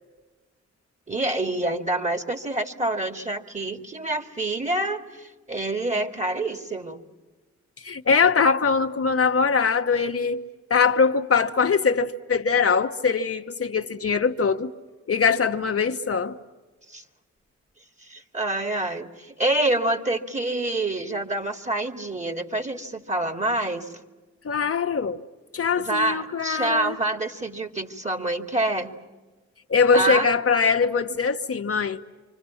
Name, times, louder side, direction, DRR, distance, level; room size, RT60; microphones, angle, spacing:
voice 1, 1.1-7.0 16.9-17.0 18.1-23.9 25.8-28.9 29.9-30.3, right 2 dB, 25° right, 2.3 m, -27 dB
voice 2, 7.8-10.4 10.7-14.7 15.1-16.4 24.4-25.2 25.5-27.0 29.7-32.0, left 5 dB, 50° left, 1.1 m, -22 dB
27.0 x 25.0 x 7.2 m
cardioid pair, 50°, 30 cm